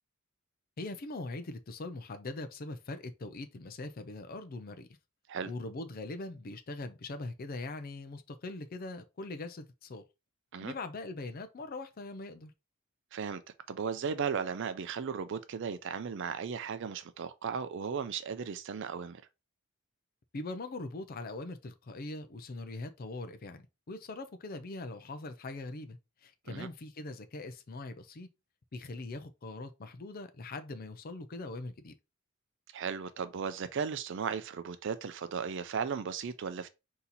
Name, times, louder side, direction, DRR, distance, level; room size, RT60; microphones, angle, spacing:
voice 1, 0.8-4.9 5.4-10.0 10.6-12.5 20.3-28.3 28.7-32.0, left 2 dB, 45° left, 0.5 m, -41 dB
voice 2, 13.7-19.2 26.5-26.7 32.7-36.7, right 6 dB, 60° right, 0.4 m, -36 dB
4.2 x 2.8 x 3.9 m
head